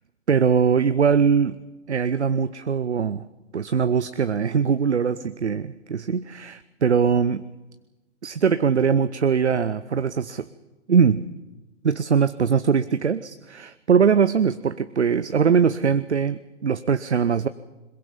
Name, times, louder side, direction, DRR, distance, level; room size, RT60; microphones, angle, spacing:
voice 1, 0.3-1.6 1.9-3.3 3.5-7.4 8.2-10.5 10.9-11.2 11.8-17.5, right 6 dB, 70° right, 14 dB, 0.8 m, -21 dB
22.0 x 22.0 x 7.0 m, 1.1 s
figure-of-eight pair, 125°, 35 cm